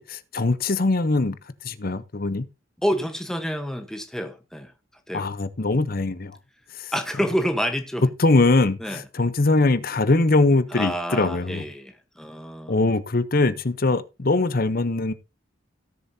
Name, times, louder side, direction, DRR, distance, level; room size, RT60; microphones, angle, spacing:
voice 1, 0.0-1.4 1.6-2.5 5.1-6.4 6.8-6.9 8.2-11.6 12.7-15.1, left 2 dB, 45° left, 0.7 m, -22 dB
voice 2, 2.8-4.7 5.1-5.3 6.9-8.0 8.8-9.0 10.7-12.8, equal, 5° left, 1.0 m, -28 dB
17.5 x 7.0 x 2.7 m
head